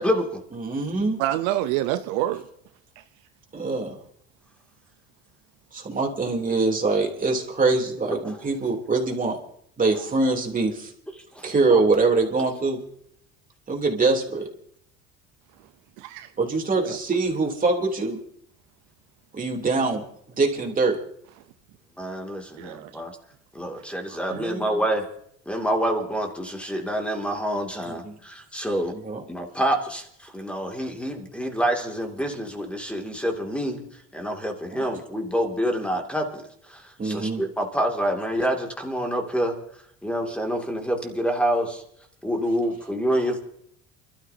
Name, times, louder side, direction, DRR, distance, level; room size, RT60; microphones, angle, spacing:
voice 1, 0.0-0.4 8.2-8.4 11.4-11.8 22.0-23.1 23.5-25.0 25.5-28.9 29.3-33.8 34.1-36.4 36.7-39.5 40.0-41.8 42.2-43.4, equal, 5° left, 2.6 m, -27 dB
voice 2, 0.5-1.2 3.5-4.0 5.7-9.4 9.8-10.9 11.4-12.8 13.7-14.5 16.4-18.2 19.3-20.0 20.4-21.0 24.3-24.7 27.9-28.2 28.9-29.2 34.7-34.8 37.0-37.4, right 3 dB, 25° right, 3.3 m, -24 dB
voice 3, 1.2-2.5 3.0-3.1 16.0-16.3 16.8-17.0 22.6-22.9 24.1-24.4, right 14 dB, 80° right, 0.8 m, -27 dB
29.0 x 13.0 x 2.9 m
supercardioid pair, 90°, 30 cm